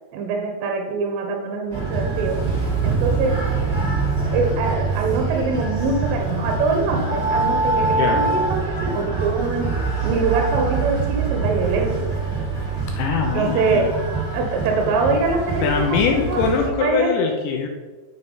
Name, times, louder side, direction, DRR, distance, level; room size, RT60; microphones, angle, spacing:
voice 1, 0.1-2.4 2.8-3.3 4.3-9.7 10.0-12.1 13.4-13.9 14.3-17.1, right 3 dB, 75° right, 2 dB, 3.8 m, -23 dB
sound 1, 1.7-16.7, right 4 dB, 25° right, 2.1 m, -24 dB
voice 2, 7.9-8.2 13.0-13.8 15.6-17.7, left 6 dB, 75° left, 2 dB, 2.9 m, -22 dB
11.5 x 6.6 x 5.6 m, 1.3 s
omnidirectional pair, 5.9 m